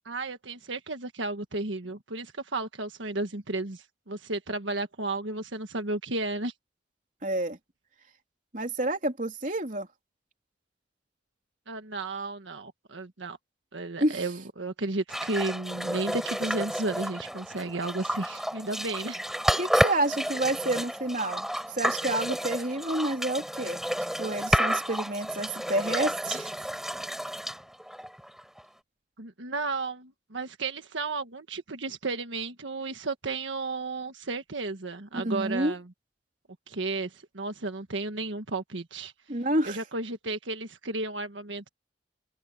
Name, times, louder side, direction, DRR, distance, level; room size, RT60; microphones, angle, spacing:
voice 1, 0.0-6.5 11.7-13.4 13.7-19.2 29.2-35.9 36.7-39.1 39.6-41.7, right 3 dB, 90° right, 1.6 m, -33 dB
voice 2, 7.2-7.6 8.5-9.9 14.0-14.2 19.6-21.5 21.7-23.8 24.2-26.5 35.1-35.7 39.3-39.8, right 1 dB, 45° right, 3.5 m, -29 dB
sound 1, 15.1-28.6, equal, ahead, 7.3 m, -31 dB
open air
head